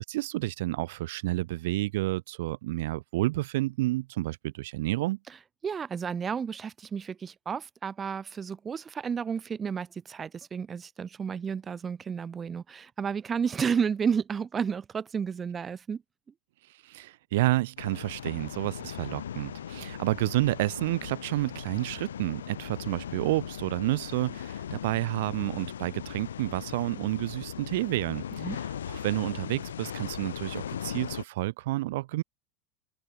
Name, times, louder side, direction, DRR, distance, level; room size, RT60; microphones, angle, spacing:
voice 1, 0.1-5.2 16.8-32.2, right 18 dB, 70° right, 1.6 m, -30 dB
voice 2, 5.6-16.0 28.4-28.6, right 6 dB, 25° right, 1.9 m, -32 dB
sound 1, 17.8-31.2, left 9 dB, 90° left, 3.3 m, -39 dB
open air
hypercardioid pair, 95°, 0 cm